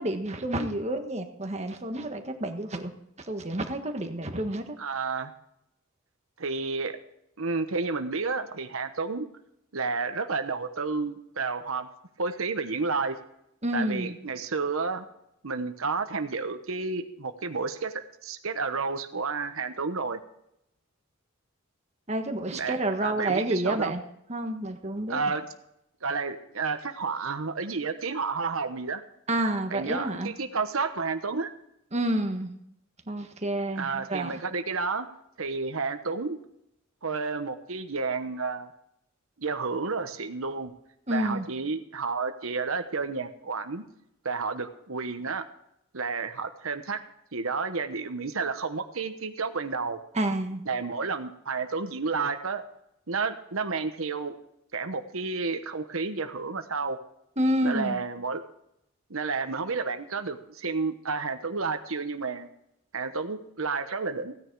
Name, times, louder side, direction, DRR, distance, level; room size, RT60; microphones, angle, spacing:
voice 1, 0.0-2.9 3.3-4.8 13.6-14.1 22.1-24.0 24.3-25.2 29.3-30.3 31.9-32.5 33.1-34.3 41.1-41.5 50.1-50.6 57.4-58.0, right 1 dB, 30° right, 5 dB, 1.5 m, -29 dB
voice 2, 4.8-5.3 6.4-7.0 7.4-9.3 9.7-11.9 12.2-13.1 13.7-15.0 15.4-17.9 18.2-20.2 22.5-22.8 23.0-23.9 25.1-25.5 26.0-29.0 29.7-31.5 33.8-35.1 35.4-36.4 37.0-38.7 39.4-40.7 41.1-43.8 44.2-45.4 45.9-47.0 47.3-50.0 50.7-52.6 53.1-54.3 54.7-57.0 57.6-58.4 59.1-62.5 62.9-64.3, right 4 dB, 75° right, 8 dB, 1.1 m, -31 dB
16.0 x 9.8 x 4.7 m, 0.77 s
head